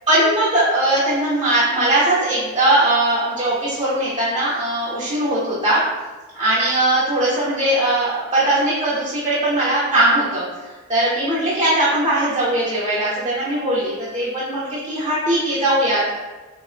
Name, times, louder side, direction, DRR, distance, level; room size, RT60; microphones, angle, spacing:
voice 1, 0.1-5.8 6.4-16.2, right 1 dB, 20° right, -9 dB, 0.5 m, -20 dB
3.4 x 2.0 x 2.4 m, 1.2 s
head